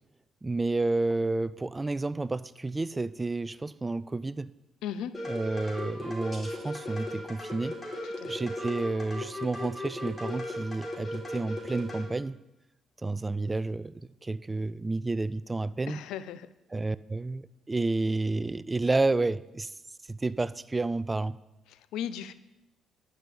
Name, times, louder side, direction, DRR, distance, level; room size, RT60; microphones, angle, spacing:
voice 1, 0.4-4.5 5.3-7.8 8.3-12.4 13.0-16.0 16.7-19.7 20.1-21.4, right 2 dB, 20° right, 18 dB, 0.4 m, -30 dB
voice 2, 4.8-5.1 8.0-8.5 15.9-16.5 21.7-22.3, left 9 dB, 85° left, 15 dB, 0.6 m, -37 dB
sound 1, 5.1-12.1, left 1 dB, 10° left, 3.5 m, -36 dB
11.5 x 5.4 x 8.6 m, 0.95 s
cardioid pair, 80°, 0 cm